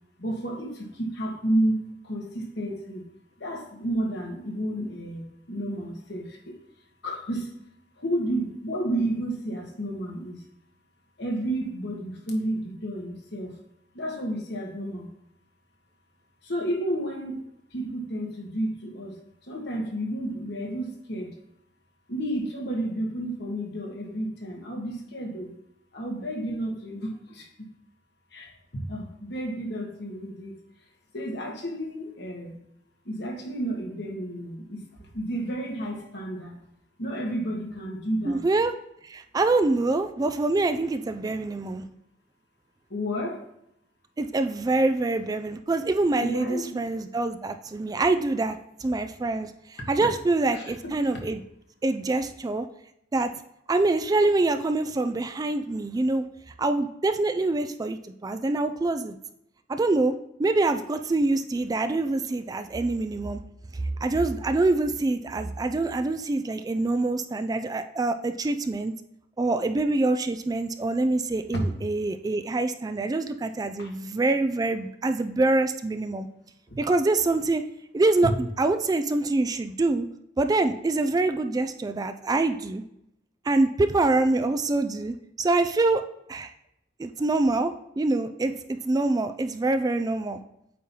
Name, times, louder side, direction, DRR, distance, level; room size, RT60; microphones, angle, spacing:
voice 1, 0.2-1.7 2.0-3.0 3.4-6.5 7.0-7.5 8.0-10.4 11.2-13.5 13.9-15.1 16.4-17.4 17.7-19.1 19.5-21.3 22.1-25.5 25.9-27.5 28.3-30.5 31.1-32.6 33.0-34.8 35.1-36.6 37.0-38.4 42.9-43.4 46.2-46.7 50.5-50.9 73.8-73.9 76.7-76.8, right 1 dB, 65° left, 0 dB, 1.6 m, -31 dB
voice 2, 38.2-38.7 39.0-41.9 44.2-51.4 51.8-52.7 53.1-53.3 53.7-56.2 56.6-59.2 59.7-60.1 60.4-63.4 63.8-68.9 69.4-76.3 76.8-77.6 77.9-80.1 80.4-82.8 83.4-86.0 86.3-86.5 87.0-90.4, right 2 dB, 20° right, 8 dB, 0.3 m, -25 dB
8.4 x 2.9 x 5.4 m, 0.79 s
head